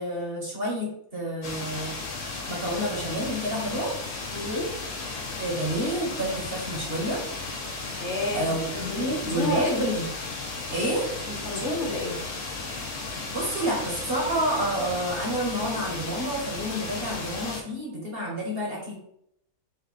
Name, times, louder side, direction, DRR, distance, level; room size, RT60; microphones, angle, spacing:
voice 1, 0.0-2.0 2.5-3.9 5.4-7.2 8.3-10.0 10.7-11.0 13.3-18.9, right 1 dB, 45° right, -2 dB, 1.2 m, -29 dB
sound 1, 1.4-17.6, left 3 dB, 85° left, 1.7 m, -35 dB
voice 2, 4.3-4.7 8.0-9.9 11.2-12.2, left 1 dB, 50° left, -2 dB, 1.3 m, -31 dB
4.4 x 2.6 x 4.1 m, 0.75 s
omnidirectional pair, 1.6 m